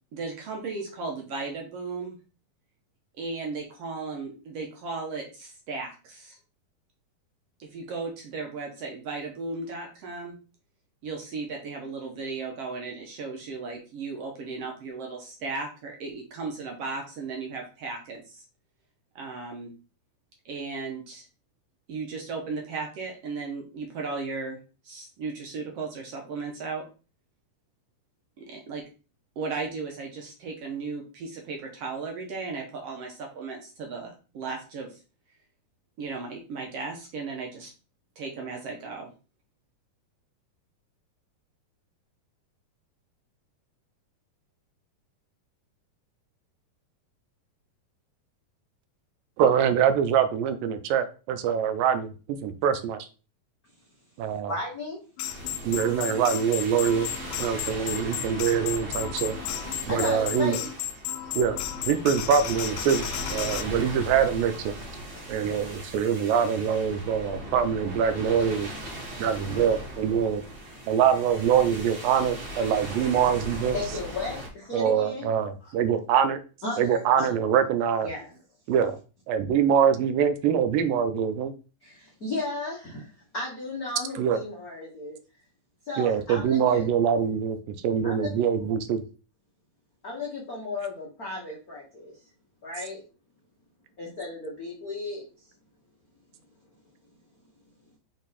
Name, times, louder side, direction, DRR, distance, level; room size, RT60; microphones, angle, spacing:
voice 1, 0.1-2.2 3.2-6.4 7.6-10.4 11.0-18.4 19.2-19.7 20.5-21.3 21.9-24.6 24.8-26.8 28.4-28.8 29.4-35.0 36.0-37.7 38.2-39.1, right 4 dB, 65° right, 2 dB, 1.6 m, -35 dB
voice 2, 49.4-52.1 52.4-53.1 54.2-54.5 55.6-57.1 57.4-59.4 59.9-60.5 61.4-61.6 61.9-64.7 65.3-68.7 69.2-70.4 70.9-73.8 74.7-76.4 76.8-78.1 78.7-79.0 79.3-81.5 84.2-84.4 86.0-87.6 87.8-89.0, right 8 dB, 85° right, 10 dB, 2.4 m, -24 dB
voice 3, 54.5-55.0 59.9-60.7 61.2-61.3 73.7-75.3 75.6-75.7 76.6-77.3 78.0-78.4 81.8-85.2 85.9-86.9 88.0-88.5 90.0-92.2 92.6-93.0 94.0-95.2, left 2 dB, 70° left, -3 dB, 0.8 m, -35 dB
sound 1, 55.2-63.6, left 12 dB, 85° left, 2.3 m, -34 dB
sound 2, 55.2-74.5, equal, 45° right, 1.3 m, -39 dB
6.4 x 3.7 x 4.1 m, 0.35 s
omnidirectional pair, 4.0 m